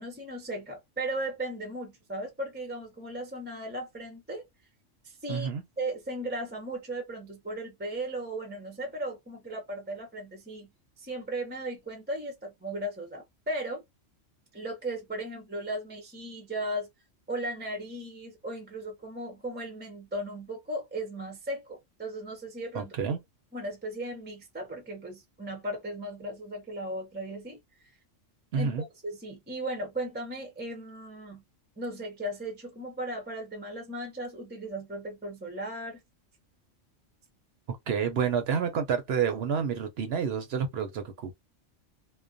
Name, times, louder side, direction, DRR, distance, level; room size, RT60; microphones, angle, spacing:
voice 1, 0.0-4.4 5.0-5.5 5.8-10.7 11.0-13.8 14.5-16.9 17.3-22.9 23.5-27.6 28.6-31.4 31.8-36.0, right 1 dB, 10° right, 0.5 m, -36 dB
voice 2, 5.3-5.6 22.7-23.2 28.5-28.8 37.7-41.3, right 7 dB, 60° right, 0.8 m, -29 dB
2.3 x 2.1 x 2.5 m
omnidirectional pair, 1.3 m